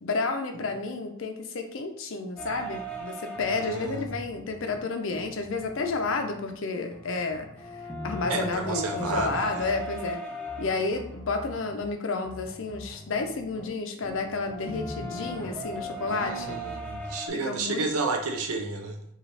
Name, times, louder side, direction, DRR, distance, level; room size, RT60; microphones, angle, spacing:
voice 1, 0.0-7.5 8.0-10.2 10.6-16.7 17.4-17.9, left 3 dB, 60° left, 6 dB, 0.5 m, -31 dB
sound 1, 2.4-4.8 5.1-6.6 6.9-17.3, right 1 dB, 5° left, 0.5 m, -39 dB
voice 2, 3.5-4.0 8.3-9.7 16.1-19.0, right 3 dB, 85° right, 4 dB, 0.6 m, -31 dB
4.9 x 2.4 x 3.3 m, 0.72 s
head